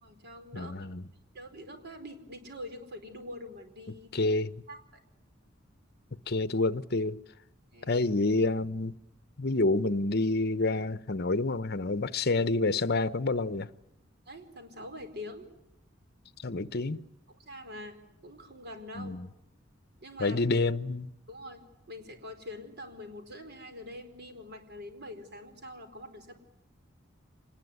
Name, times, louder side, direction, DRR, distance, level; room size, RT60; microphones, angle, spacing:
voice 1, 0.0-0.8 1.3-4.1 4.7-4.8 7.7-7.9 14.3-15.5 17.3-18.0 18.2-19.2 20.0-20.4 21.3-26.4, left 1 dB, 55° right, 4.7 m, -44 dB
voice 2, 0.5-1.0 4.1-4.6 6.3-7.2 7.9-8.9 9.4-13.7 16.4-17.0 18.9-19.3 20.2-21.1, left 2 dB, 55° left, 1.0 m, -28 dB
25.5 x 20.0 x 9.7 m
head